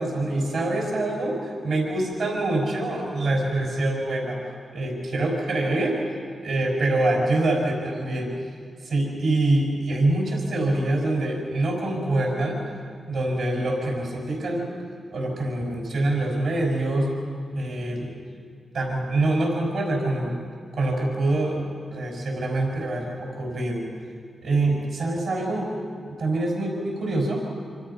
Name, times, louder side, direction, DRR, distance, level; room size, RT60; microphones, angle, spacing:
voice 1, 0.0-4.4 4.7-6.0 6.4-8.3 8.8-12.6 13.1-14.7 15.1-17.1 17.5-18.1 18.7-20.4 20.7-21.6 21.9-23.9 24.4-25.7 26.2-27.4, right 2 dB, 80° right, -1 dB, 5.6 m, -25 dB
27.0 x 26.0 x 5.7 m, 2.1 s
cardioid pair, 60°, 0 cm